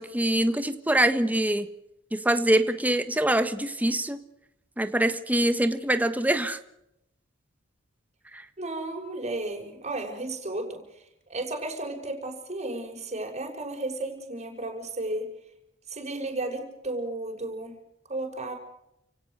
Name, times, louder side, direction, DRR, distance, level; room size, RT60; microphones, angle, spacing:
voice 1, 0.0-1.7 2.1-4.2 4.8-6.6 8.3-8.4, right 1 dB, 10° right, 9 dB, 1.4 m, -24 dB
voice 2, 8.6-10.8 11.3-15.3 15.9-17.8 18.1-18.6, right 2 dB, 35° right, 2 dB, 6.2 m, -33 dB
30.0 x 17.5 x 6.7 m, 0.81 s
head